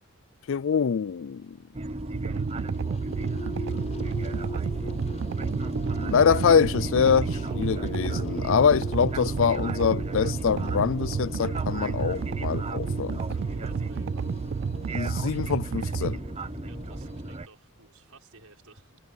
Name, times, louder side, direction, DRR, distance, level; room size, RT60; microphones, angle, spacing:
voice 1, 0.5-1.6 6.0-13.2 14.9-16.2, left 6 dB, 60° left, 0.4 m, -24 dB
sound 1, 1.7-17.5, right 2 dB, 25° right, 0.7 m, -35 dB
sound 2, 2.1-17.4, left 1 dB, 30° left, 4.4 m, -42 dB
sound 3, 2.1-16.2, right 6 dB, 55° right, 0.3 m, -31 dB
voice 2, 2.2-2.7 9.2-9.5 13.4-14.3 16.6-19.0, right 3 dB, 70° right, 5.9 m, -54 dB
head